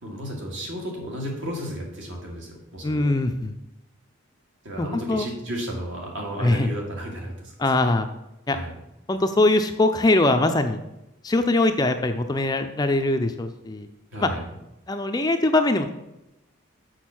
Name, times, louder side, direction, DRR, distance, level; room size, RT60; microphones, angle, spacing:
voice 1, 0.0-3.1 4.6-7.9 8.5-8.7 14.1-14.4, equal, 65° right, -1 dB, 2.3 m, -33 dB
voice 2, 2.8-3.5 4.8-5.3 6.4-6.7 7.6-8.1 8.5-8.6 9.1-10.8 11.2-13.9 14.2-14.3 14.9-15.9, left 2 dB, 20° left, 7 dB, 0.4 m, -22 dB
6.4 x 6.2 x 5.9 m, 0.93 s
head